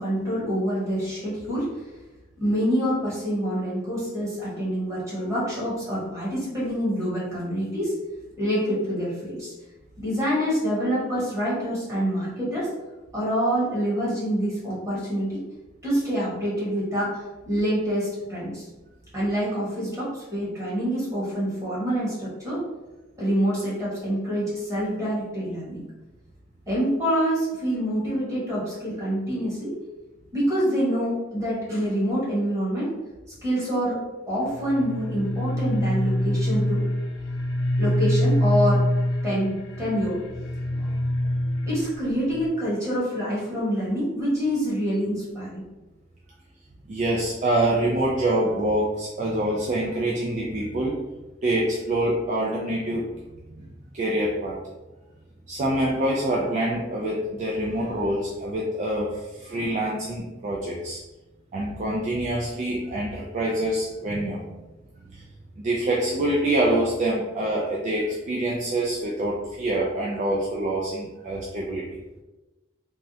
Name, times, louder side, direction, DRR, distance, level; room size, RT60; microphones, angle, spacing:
voice 1, 0.0-1.7 2.4-7.9 8.4-9.5 10.0-12.7 13.1-15.4 15.8-18.6 19.1-22.6 23.2-25.8 26.7-29.7 30.3-32.9 33.4-34.0 34.3-36.8 37.8-38.8 39.2-40.2 40.7-40.9 41.7-45.6, equal, 15° right, -8 dB, 1.3 m, -26 dB
sound 1, 34.4-42.5, equal, 65° left, 0.4 m, -25 dB
voice 2, 46.9-51.0 51.4-53.1 53.6-54.6 55.5-61.0 61.5-64.4 65.1-65.2 65.6-71.9, right 1 dB, 40° right, -3 dB, 0.3 m, -26 dB
3.4 x 2.1 x 2.6 m, 1.1 s
head